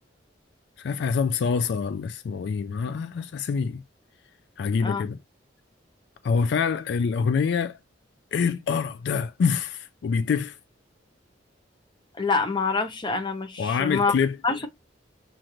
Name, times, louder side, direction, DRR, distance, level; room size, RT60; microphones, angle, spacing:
voice 1, 0.8-3.8 4.6-5.2 6.2-7.8 8.3-10.6 13.6-14.4, left 5 dB, 65° left, 0.3 m, -25 dB
voice 2, 12.2-14.1 14.4-14.7, left 4 dB, 25° left, 0.7 m, -26 dB
6.3 x 2.5 x 3.0 m
head